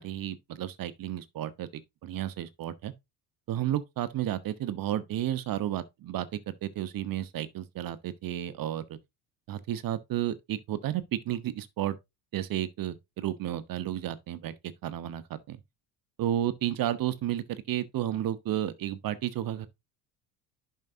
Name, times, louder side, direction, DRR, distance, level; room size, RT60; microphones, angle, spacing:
voice 1, 0.0-2.9 3.5-9.0 9.5-12.0 12.3-14.5 14.8-15.6 16.2-19.7, right 12 dB, 50° right, 1.1 m, -32 dB
11.0 x 5.6 x 2.8 m
hypercardioid pair, 75°, 43 cm